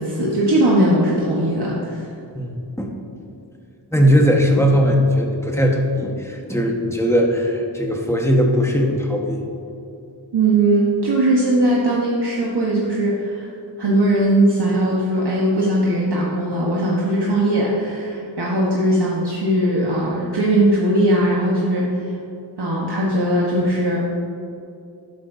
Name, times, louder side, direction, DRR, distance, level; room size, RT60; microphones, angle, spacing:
voice 1, 0.0-2.1 10.3-13.5 13.8-22.2 22.6-24.0, right 1 dB, 65° right, -5 dB, 1.3 m, -19 dB
voice 2, 3.9-9.4, equal, 5° left, 0 dB, 1.3 m, -18 dB
11.5 x 10.0 x 2.7 m, 2.6 s
wide cardioid pair, 70°, 43 cm